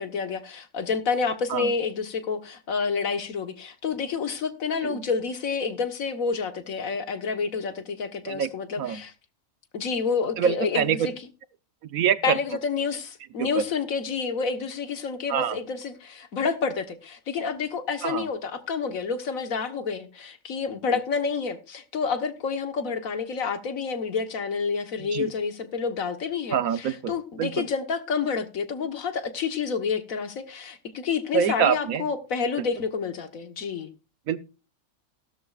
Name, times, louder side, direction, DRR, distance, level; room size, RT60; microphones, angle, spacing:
voice 1, 0.0-9.1 9.7-11.1 12.2-33.9, left 5 dB, 80° left, 1.7 m, -29 dB
voice 2, 10.4-11.0 11.8-12.4 13.4-13.6 15.3-15.6 18.0-18.3 25.0-25.3 26.5-27.1 27.4-27.7 31.3-32.0 34.3-34.4, right 8 dB, 90° right, 1.3 m, -25 dB
15.0 x 12.5 x 2.4 m
omnidirectional pair, 1.4 m